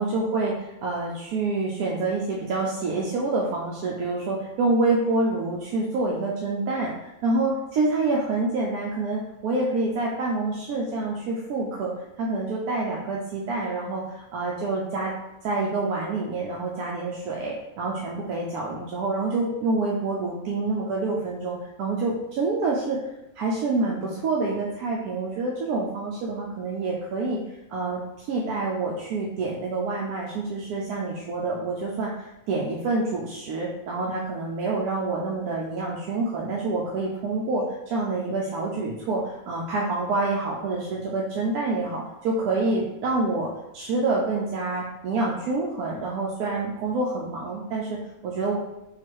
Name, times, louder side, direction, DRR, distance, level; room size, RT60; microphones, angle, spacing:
voice 1, 0.0-11.9 12.2-15.1 15.4-23.0 23.4-27.4 27.7-48.6, right 3 dB, 90° right, -3 dB, 1.1 m, -27 dB
3.8 x 2.4 x 4.6 m, 0.92 s
omnidirectional pair, 1.6 m